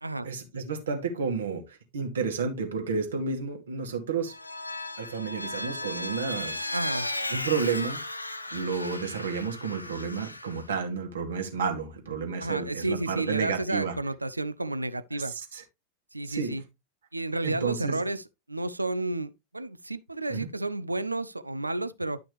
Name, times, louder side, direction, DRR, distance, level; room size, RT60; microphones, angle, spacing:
voice 1, 0.2-4.3 5.0-6.6 7.3-8.0 8.5-14.0 15.1-15.6 16.2-16.6 17.4-18.0 20.3-20.5, right 5 dB, 65° right, 2.4 m, -31 dB
Vehicle, 4.3-10.6, left 2 dB, 85° left, 0.9 m, -35 dB
voice 2, 6.7-7.1 12.4-15.3 16.1-16.6 17.1-18.2 18.5-22.2, right 2 dB, 85° right, 0.6 m, -31 dB
11.0 x 6.0 x 3.2 m
figure-of-eight pair, 90°, 0 cm